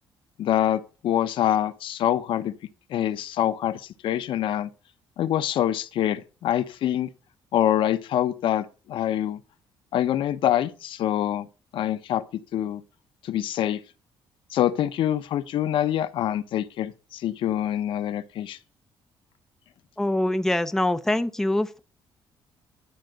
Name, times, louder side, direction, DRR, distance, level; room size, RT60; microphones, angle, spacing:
voice 1, 0.4-2.5 2.9-4.7 5.2-7.1 7.5-9.4 9.9-11.5 11.7-12.8 13.2-13.8 14.5-18.6, left 11 dB, 70° left, 0.8 m, -25 dB
voice 2, 20.0-21.8, left 1 dB, 5° left, 0.6 m, -24 dB
11.5 x 3.9 x 7.6 m
cardioid pair, 135°, 9 cm